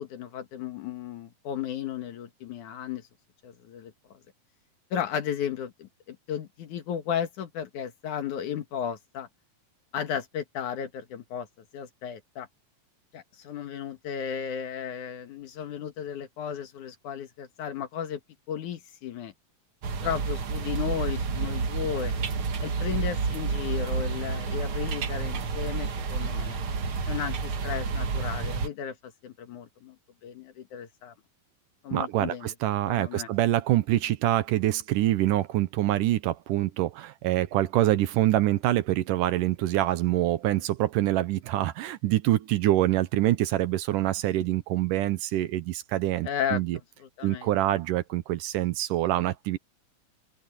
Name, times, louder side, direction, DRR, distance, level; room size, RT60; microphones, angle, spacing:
voice 1, 0.0-3.0 3.4-3.9 4.9-9.3 9.9-11.5 11.7-12.5 13.1-18.2 18.5-19.3 20.0-22.1 22.6-26.6 27.1-30.0 30.2-31.1 31.8-32.5 32.8-33.3 46.2-46.6 47.0-47.5, left 8 dB, 65° left, 2.8 m, -34 dB
sound 1, 19.8-28.7, right 5 dB, 50° right, 1.9 m, -30 dB
voice 2, 31.9-46.8 47.2-49.6, right 14 dB, 75° right, 2.3 m, -25 dB
open air
omnidirectional pair, 4.0 m